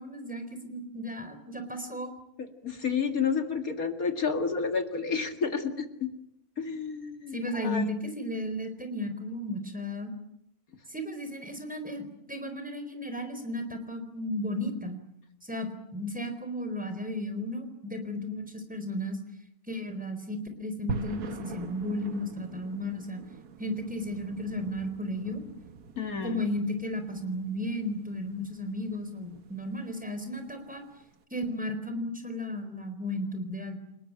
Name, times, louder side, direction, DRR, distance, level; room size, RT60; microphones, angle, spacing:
voice 1, 0.0-2.1 7.3-10.1 10.9-15.0 15.4-19.2 19.7-23.2 23.6-25.4 26.2-30.8 31.3-33.8, left 1 dB, 5° right, 7 dB, 4.3 m, -34 dB
voice 2, 2.4-6.1 6.6-7.8 26.0-26.4, left 5 dB, 65° left, 6 dB, 2.6 m, -30 dB
sound 1, 20.9-31.1, right 5 dB, 80° right, 1.8 m, -43 dB
29.5 x 19.0 x 8.9 m, 0.81 s
omnidirectional pair, 1.6 m